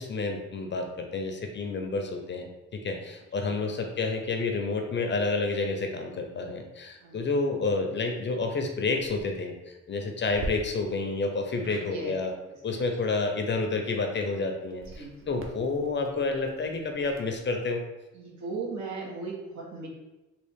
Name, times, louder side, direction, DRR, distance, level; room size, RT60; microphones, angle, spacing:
voice 1, 0.0-12.3 12.6-17.8, left 3 dB, 40° left, 4 dB, 0.6 m, -29 dB
voice 2, 7.0-7.4 11.6-12.1 12.4-12.9 15.0-15.3 18.1-19.9, right 4 dB, 70° right, -3 dB, 1.2 m, -38 dB
sound 1, 9.0-9.3 10.3-10.5 11.6-11.9 14.7-17.5, right 2 dB, 45° right, 0.6 m, -43 dB
3.6 x 2.4 x 3.5 m, 1.0 s
cardioid pair, 90°, 30 cm